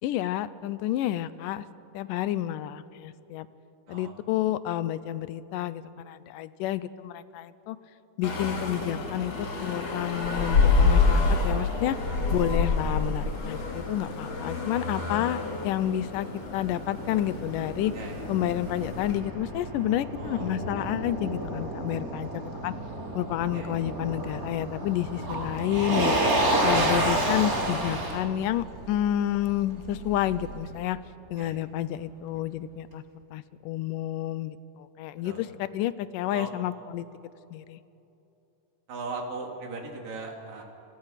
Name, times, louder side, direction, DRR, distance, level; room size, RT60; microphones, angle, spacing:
voice 1, 0.0-1.6 1.9-3.5 3.9-7.8 8.2-12.0 12.3-17.9 18.3-22.7 23.1-26.2 26.6-31.0 31.3-33.0 33.3-37.1 37.5-37.8, left 12 dB, 80° left, 15 dB, 2.2 m, -30 dB
sound 1, 8.2-19.2, left 4 dB, 50° left, 3.6 m, -27 dB
Motor vehicle (road), 15.7-30.7, right 1 dB, 25° right, 3.4 m, -31 dB
voice 2, 17.9-18.3 20.1-20.6 23.5-23.8 31.4-31.6 35.2-35.4 36.3-36.5 38.9-40.6, right 3 dB, 80° right, 1 dB, 4.6 m, -39 dB
28.5 x 27.5 x 5.8 m, 2.9 s
omnidirectional pair, 3.8 m